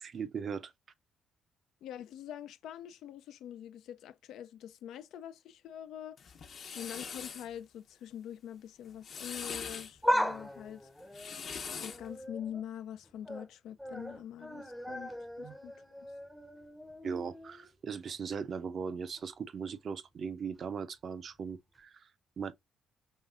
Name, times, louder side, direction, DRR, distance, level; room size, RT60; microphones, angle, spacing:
voice 1, 0.0-0.7 15.4-15.5 17.0-22.1 22.4-22.5, right 6 dB, 50° right, 0.5 m, -39 dB
voice 2, 1.8-6.2 6.7-10.8 11.8-15.1 15.4-15.7, left 10 dB, 80° left, 0.4 m, -44 dB
sound 1, 6.2-7.5 8.8-9.9 11.0-12.1, left 6 dB, 55° left, 0.8 m, -42 dB
sound 2, 9.8-12.6 13.0-13.5 13.8-17.7 18.1-18.2 19.2-19.3, equal, ahead, 0.6 m, -37 dB
5.5 x 3.1 x 2.4 m
cardioid pair, 95°, 0 cm